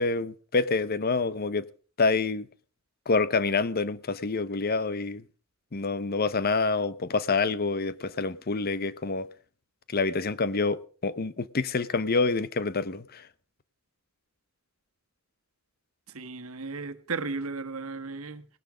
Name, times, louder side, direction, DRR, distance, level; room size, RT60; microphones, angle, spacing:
voice 1, 0.0-1.7 2.0-2.5 3.1-5.2 5.7-9.3 9.9-13.3, left 4 dB, 45° left, 0.8 m, -27 dB
voice 2, 16.1-18.5, right 4 dB, 90° right, 1.4 m, -35 dB
18.5 x 12.0 x 5.0 m
head